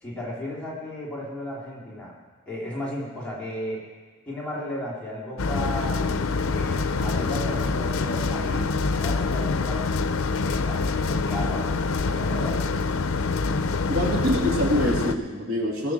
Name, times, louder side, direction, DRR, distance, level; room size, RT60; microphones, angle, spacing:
voice 1, 0.0-2.2 2.5-3.8 4.3-9.9 10.4-12.7, left 1 dB, 5° left, -6 dB, 2.9 m, -34 dB
sound 1, 5.4-15.1, left 4 dB, 85° left, 0.6 m, -25 dB
voice 2, 13.9-15.9, equal, 85° right, -2 dB, 2.6 m, -25 dB
20.5 x 7.2 x 6.2 m, 1.4 s
head